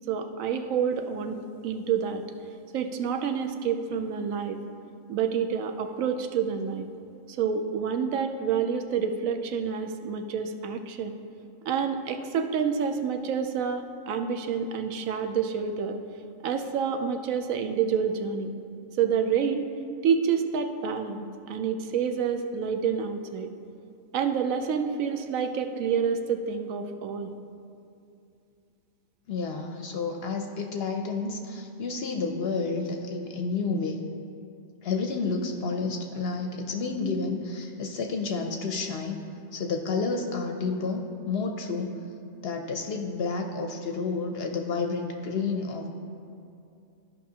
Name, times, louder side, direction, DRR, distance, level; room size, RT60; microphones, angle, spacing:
voice 1, 0.1-2.2 2.7-4.6 5.1-6.9 7.3-11.2 11.6-16.0 16.4-18.5 19.0-19.7 20.0-23.5 24.1-27.3, right 7 dB, 80° right, 7 dB, 1.0 m, -28 dB
voice 2, 29.3-34.0 34.8-39.2 39.5-42.0 42.4-45.9, left 4 dB, 60° left, 4 dB, 0.7 m, -30 dB
13.0 x 5.4 x 2.8 m, 2.6 s
omnidirectional pair, 1.4 m